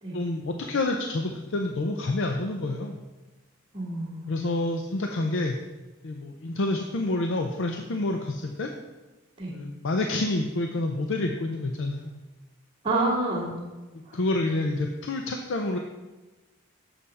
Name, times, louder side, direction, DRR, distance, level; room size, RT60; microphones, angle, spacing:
voice 1, 0.1-3.0 4.3-5.6 6.0-8.7 9.5-12.2 14.1-15.8, left 2 dB, 60° left, 3 dB, 0.6 m, -28 dB
voice 2, 3.7-4.7 9.4-9.5 12.8-13.5 14.1-14.2, right 2 dB, 25° right, -11 dB, 1.7 m, -29 dB
7.7 x 6.9 x 4.2 m, 1.2 s
head